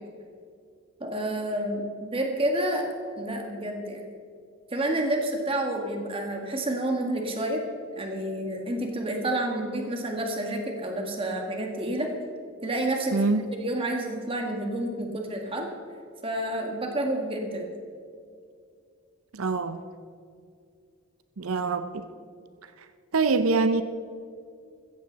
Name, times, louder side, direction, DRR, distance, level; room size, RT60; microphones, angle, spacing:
voice 1, 1.0-2.9 3.2-4.0 4.7-7.6 8.0-12.1 12.6-13.2 13.5-15.7 16.2-17.7, right 1 dB, 25° right, 2 dB, 2.0 m, -29 dB
voice 2, 13.1-13.5 19.3-19.8 21.4-22.1 23.1-23.8, right 4 dB, 85° right, 10 dB, 0.7 m, -24 dB
15.0 x 15.0 x 4.1 m, 2.3 s
head